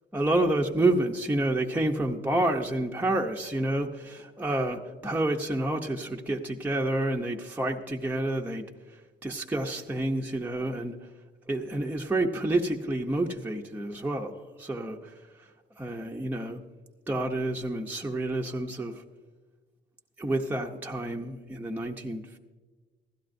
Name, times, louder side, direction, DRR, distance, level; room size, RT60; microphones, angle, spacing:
voice 1, 0.1-8.6 9.2-11.0 11.5-15.1 15.8-16.6 17.1-19.0 20.2-22.4, right 1 dB, 10° right, 1 dB, 0.6 m, -29 dB
16.0 x 13.0 x 2.6 m, 1.4 s
cardioid pair, 135°, 20 cm